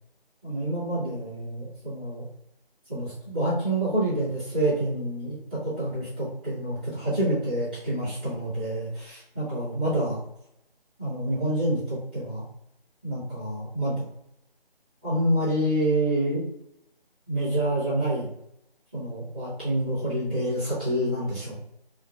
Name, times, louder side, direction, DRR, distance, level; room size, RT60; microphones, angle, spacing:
voice 1, 0.4-2.3 2.9-9.0 9.3-10.2 11.0-12.4 13.0-13.9 15.0-16.4 17.3-18.3 18.9-21.6, right 1 dB, 10° right, -17 dB, 1.0 m, -27 dB
3.7 x 2.2 x 2.3 m, 0.78 s
figure-of-eight pair, 160°, 31 cm